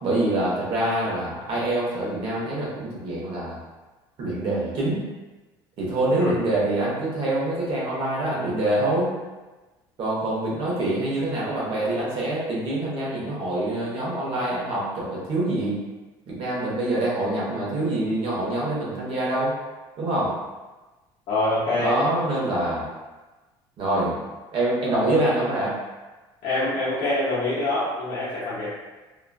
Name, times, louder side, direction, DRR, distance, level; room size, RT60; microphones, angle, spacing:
voice 1, 0.0-3.6 4.2-5.0 5.8-9.1 10.0-15.8 16.3-19.5 20.0-20.3 21.8-22.9 23.8-24.2 24.5-25.7, right 1 dB, 55° right, -5 dB, 1.1 m, -25 dB
voice 2, 21.3-22.0 26.4-28.7, left 2 dB, 70° left, -9 dB, 0.8 m, -25 dB
3.0 x 2.4 x 2.3 m, 1.2 s
supercardioid pair, 90°, 11 cm